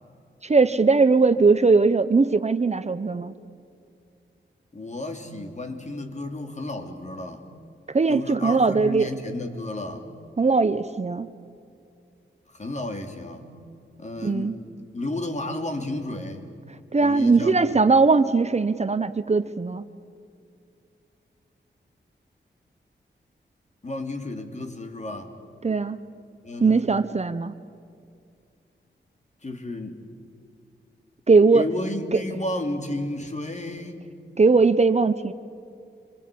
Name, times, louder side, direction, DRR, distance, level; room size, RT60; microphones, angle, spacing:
voice 1, 0.4-3.3 7.9-9.1 10.4-11.3 14.2-14.5 16.9-19.8 25.6-26.0 26.6-27.5 31.3-31.7 32.1-32.2 34.4-35.3, right 4 dB, 35° right, 11 dB, 0.8 m, -20 dB
voice 2, 4.7-7.5 8.1-10.1 12.5-13.6 14.0-14.5 14.9-16.5 17.0-17.8 23.8-25.3 26.4-26.9 29.4-30.0 31.5-34.1, left 1 dB, 35° left, 4 dB, 3.1 m, -32 dB
26.5 x 22.0 x 8.5 m, 2.4 s
cardioid pair, 70°, 19 cm